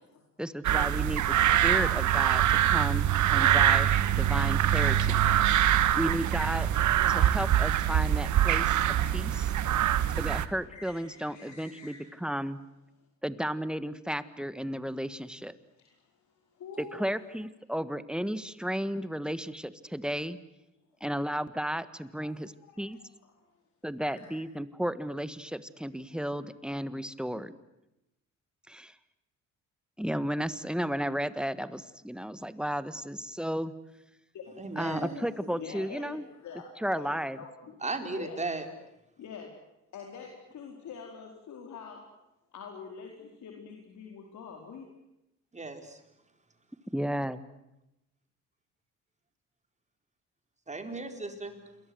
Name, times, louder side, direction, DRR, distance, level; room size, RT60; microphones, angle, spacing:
voice 1, 0.4-1.2 1.6-5.2 5.9-6.7 7.1-8.8 9.1-9.5 10.2-12.6 13.2-15.5 16.8-20.4 21.0-22.5 22.8-23.0 23.8-27.6 28.7-28.9 30.0-33.7 34.8-36.3 36.8-37.4 46.9-47.4, equal, 5° right, 13 dB, 1.6 m, -33 dB
sound 1, 0.6-10.5, right 11 dB, 75° right, 1.6 m, -24 dB
voice 2, 4.9-5.5 6.6-6.8 9.3-9.9 10.7-12.1 15.2-15.3 15.7-17.1 22.2-23.6 24.0-24.4 34.3-38.5 39.2-39.5 39.9-42.0 42.5-44.9, left 6 dB, 70° left, 1 dB, 4.5 m, -47 dB
voice 3, 34.6-35.1 37.8-38.6 45.5-46.0 50.7-51.5, right 3 dB, 25° right, 6 dB, 4.6 m, -35 dB
28.5 x 22.5 x 8.0 m, 0.91 s
cardioid pair, 90°, 30 cm